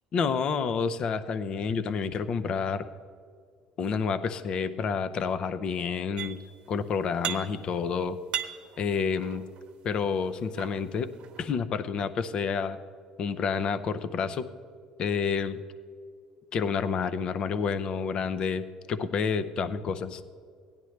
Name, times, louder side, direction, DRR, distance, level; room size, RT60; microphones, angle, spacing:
voice 1, 0.1-2.9 3.8-6.4 6.7-8.2 8.8-9.5 9.8-11.1 11.4-12.8 13.2-14.5 15.0-15.6 16.5-20.2, left 6 dB, 45° left, 12 dB, 0.6 m, -29 dB
sound 1, 6.2-6.7 7.0-7.8 8.1-9.7 10.3-11.5, right 10 dB, 65° right, 0.9 m, -37 dB
16.5 x 10.5 x 3.2 m, 2.2 s
supercardioid pair, 100°, 2 cm